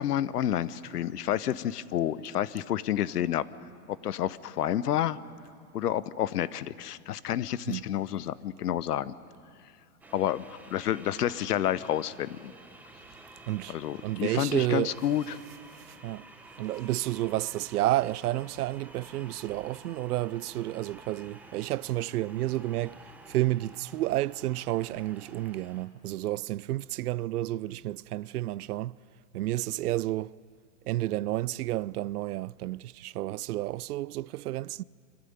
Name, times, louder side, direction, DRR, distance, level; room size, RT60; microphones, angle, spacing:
voice 1, 0.0-3.4 3.9-5.2 5.7-9.1 10.1-10.4 10.7-12.5 13.7-15.4, left 11 dB, 85° left, 1.0 m, -29 dB
sound 1, 10.0-25.8, right 2 dB, 5° right, 0.8 m, -51 dB
voice 2, 13.5-13.8 14.0-15.0 15.8-16.3 16.6-29.0 29.3-30.3 30.9-34.8, right 16 dB, 75° right, 0.5 m, -31 dB
25.5 x 15.0 x 9.5 m
hypercardioid pair, 150°, 45 cm